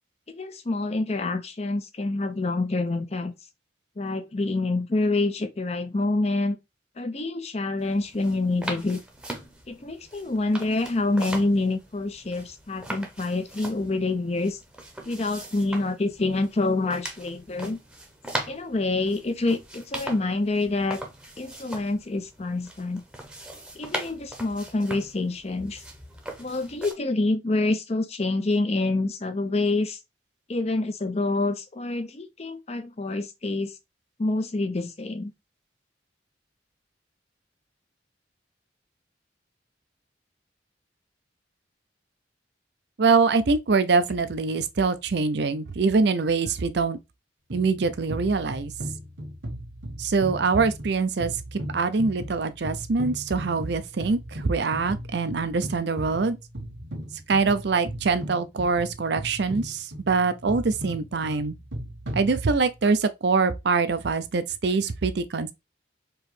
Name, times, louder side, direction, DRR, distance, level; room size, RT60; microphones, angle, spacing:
voice 1, 0.3-3.3 4.0-6.6 7.0-9.0 9.7-14.6 15.1-17.8 18.5-21.0 21.4-23.0 23.7-25.8 26.4-30.0 30.5-33.7 34.2-35.3, left 2 dB, 35° left, 0.6 m, -27 dB
sound 1, 7.8-26.9, right 1 dB, 5° right, 0.9 m, -40 dB
voice 2, 43.0-47.0 47.5-48.7 50.0-56.4 57.3-61.6 62.1-65.5, right 4 dB, 60° right, 0.5 m, -24 dB
sound 2, 47.5-62.9, right 1 dB, 80° right, 1.5 m, -37 dB
4.6 x 3.0 x 3.3 m
head